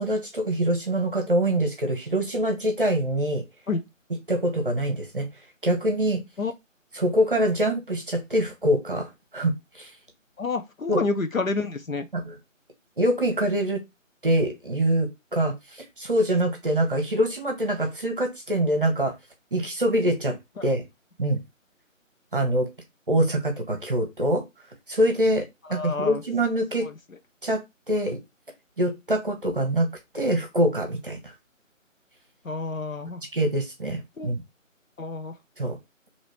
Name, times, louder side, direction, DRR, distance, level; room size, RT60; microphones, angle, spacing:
voice 1, 0.0-3.4 4.3-5.3 5.6-6.2 6.9-10.0 10.9-11.0 12.1-12.4 13.0-13.8 14.2-19.1 19.5-20.3 20.6-20.8 21.2-21.4 22.3-22.7 23.1-24.4 24.9-26.9 27.4-28.2 28.8-29.9 30.1-31.3 33.3-34.4 35.6-35.8, right 1 dB, 40° right, 0.9 m, -24 dB
voice 2, 10.4-12.1 25.7-26.2 26.8-26.9 32.4-33.2 34.2-34.3 35.0-35.3, left 3 dB, 85° left, 1.0 m, -29 dB
3.0 x 2.8 x 4.4 m
figure-of-eight pair, 165°, 40 cm